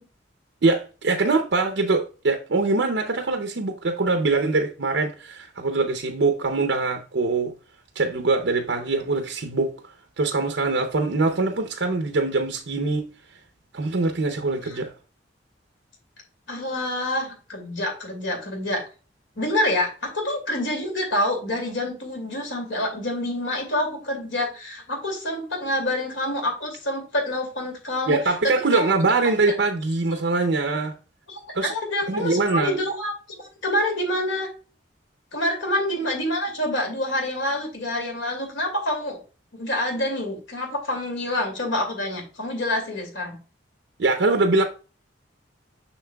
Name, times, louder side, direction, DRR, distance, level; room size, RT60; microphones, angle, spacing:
voice 1, 0.6-7.5 8.0-9.7 10.2-13.1 13.7-14.9 28.1-30.9 31.5-31.7 32.1-32.8 44.0-44.6, right 3 dB, 70° right, 0.7 m, -23 dB
voice 2, 16.5-18.8 19.4-28.2 28.4-28.9 29.2-29.5 31.3-34.5 35.3-39.2 39.5-43.3, left 1 dB, 85° left, 2.5 m, -27 dB
7.0 x 5.9 x 2.3 m
head